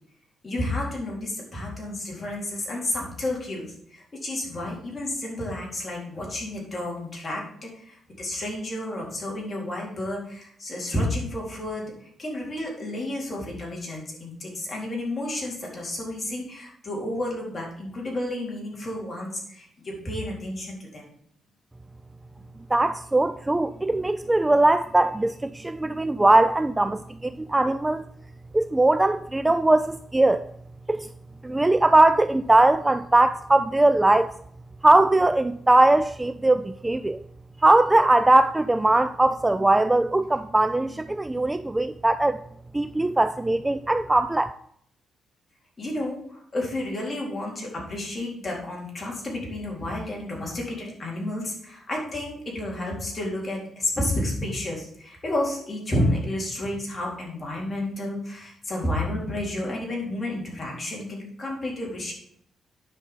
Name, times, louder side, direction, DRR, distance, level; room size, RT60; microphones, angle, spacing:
voice 1, 0.4-21.1 45.8-62.1, left 1 dB, 30° left, 3.9 m, -31 dB
voice 2, 22.7-28.0 28.5-30.4 30.9-31.1 31.4-34.3 34.8-37.2 37.6-42.4 42.7-44.5, right 2 dB, 15° right, 0.3 m, -20 dB
9.9 x 5.9 x 5.2 m
cardioid pair, 120°, 0 cm